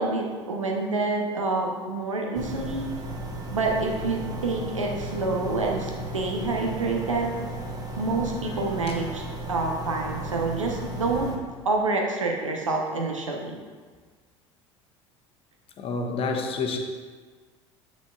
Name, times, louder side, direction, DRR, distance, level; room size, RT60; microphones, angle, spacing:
voice 1, 0.0-2.9 3.5-7.4 8.0-9.2 9.5-11.3 11.6-13.6, right 3 dB, 85° right, 1 dB, 0.9 m, -27 dB
sound 1, 2.3-11.4, right 1 dB, 25° right, 1.0 m, -35 dB
voice 2, 15.8-16.8, left 4 dB, 35° left, 3 dB, 0.9 m, -28 dB
7.5 x 6.0 x 2.3 m, 1.5 s
figure-of-eight pair, 70°, 16 cm